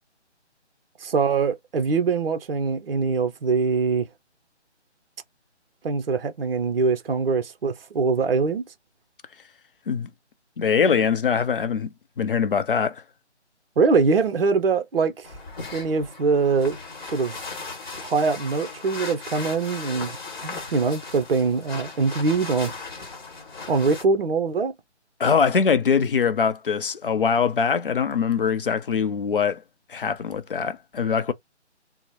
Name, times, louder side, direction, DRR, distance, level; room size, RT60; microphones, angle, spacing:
voice 1, 1.0-4.1 5.8-8.6 13.8-15.3 15.7-16.8 17.1-17.4 18.0-22.7 23.7-24.7, right 4 dB, 55° right, 0.6 m, -23 dB
voice 2, 10.6-13.0 25.2-29.6 29.9-31.3, left 6 dB, 50° left, 0.5 m, -23 dB
sound 1, 15.2-24.0, left 4 dB, 20° left, 1.0 m, -37 dB
2.9 x 2.0 x 4.0 m
figure-of-eight pair, 155°, 35 cm